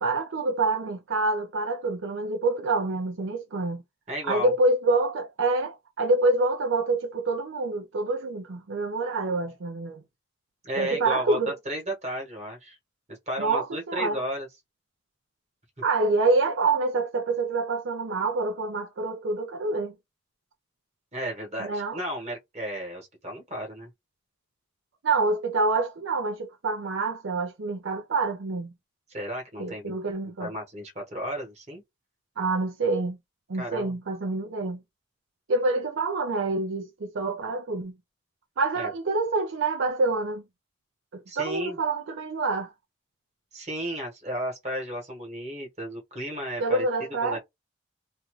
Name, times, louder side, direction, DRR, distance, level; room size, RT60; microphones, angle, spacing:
voice 1, 0.0-3.8 4.3-10.0 10.8-11.5 13.4-14.2 15.8-19.9 21.6-22.0 25.0-28.7 29.6-30.5 32.4-33.2 33.5-34.8 35.5-37.9 38.6-40.4 41.1-42.7 46.6-47.4, right 3 dB, 70° right, 0.5 m, -26 dB
voice 2, 4.1-4.5 10.6-12.8 13.1-14.5 21.1-23.9 29.1-30.0 30.4-31.8 33.6-34.0 38.7-38.9 41.3-41.8 43.5-47.4, equal, 35° right, 1.3 m, -34 dB
2.6 x 2.3 x 3.1 m
head